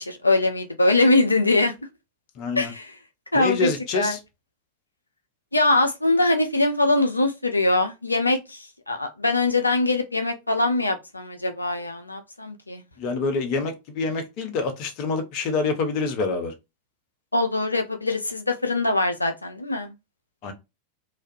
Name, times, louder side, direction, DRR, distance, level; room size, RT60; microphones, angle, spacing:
voice 1, 0.0-1.7 2.6-2.9 3.3-4.2 5.5-12.8 17.3-19.9, left 2 dB, 80° left, 0.4 m, -22 dB
voice 2, 2.4-2.7 3.3-4.2 13.0-16.5 20.4-20.5, left 4 dB, 40° left, 0.6 m, -26 dB
2.3 x 2.1 x 2.5 m
figure-of-eight pair, 90°, 0 cm